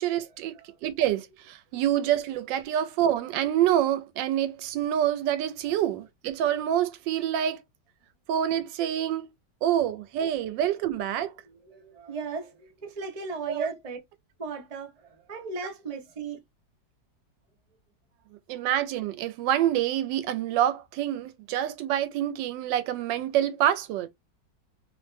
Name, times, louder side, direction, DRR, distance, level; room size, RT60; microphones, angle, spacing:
voice 1, 0.0-0.5 0.8-7.6 8.3-9.3 9.6-11.3 13.5-13.7 18.5-24.1, right 11 dB, 85° right, 1.2 m, -26 dB
voice 2, 11.5-14.0 14.4-16.4, right 4 dB, 50° right, 0.4 m, -37 dB
3.0 x 2.1 x 3.2 m
omnidirectional pair, 1.9 m